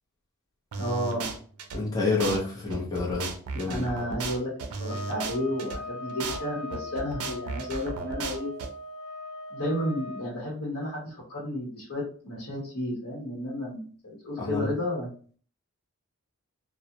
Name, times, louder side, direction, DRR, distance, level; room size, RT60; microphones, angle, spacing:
sound 1, 0.7-1.8 2.2-2.4 2.7-5.8 6.2-6.4 6.7-8.7, right 3 dB, 75° right, 0.4 m, -34 dB
voice 1, 0.8-1.3 3.6-8.5 9.5-15.1, equal, 70° left, -4 dB, 0.8 m, -32 dB
voice 2, 1.7-3.8 14.4-14.7, left 3 dB, 15° left, -4 dB, 0.7 m, -28 dB
sound 2, 4.8-10.3, left 1 dB, 85° left, 0.5 m, -40 dB
2.3 x 2.0 x 2.7 m, 0.43 s
head